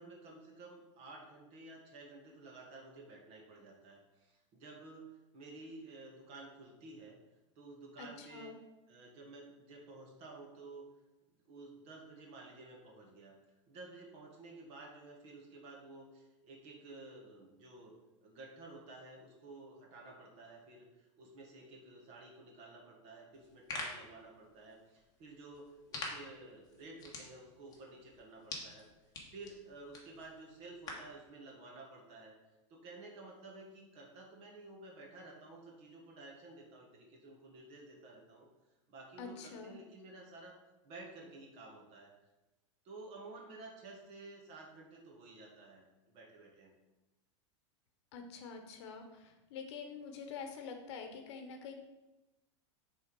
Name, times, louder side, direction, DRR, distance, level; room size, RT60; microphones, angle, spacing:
voice 1, 0.0-5.1 5.3-7.2 7.5-8.5 8.9-10.9 11.5-13.3 13.7-17.9 18.2-28.9 29.3-32.4 32.7-38.5 38.9-40.6 40.8-42.1 42.8-46.7, right 2 dB, 40° right, 0 dB, 1.6 m, -52 dB
voice 2, 8.0-8.5 39.2-39.8 48.1-51.7, left 5 dB, 60° left, 5 dB, 1.0 m, -46 dB
sound 1, 23.3-31.2, left 3 dB, 25° left, 1.2 m, -48 dB
6.3 x 3.7 x 4.7 m, 1.0 s
supercardioid pair, 145°, 16 cm